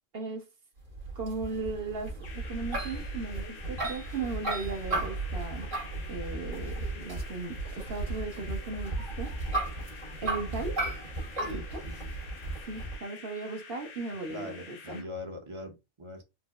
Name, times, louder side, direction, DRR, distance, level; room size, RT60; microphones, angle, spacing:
voice 1, 0.1-0.4 1.1-5.7 6.1-9.3 10.2-10.8 11.5-11.8 12.7-15.1, right 3 dB, 55° right, 1.0 m, -37 dB
sound 1, 0.9-13.0, right 2 dB, 80° right, 2.0 m, -35 dB
sound 2, 2.2-15.0, left 5 dB, 50° left, 0.5 m, -49 dB
voice 2, 11.4-12.1 14.3-16.2, left 1 dB, 30° right, 0.6 m, -42 dB
4.4 x 2.0 x 2.3 m
omnidirectional pair, 1.3 m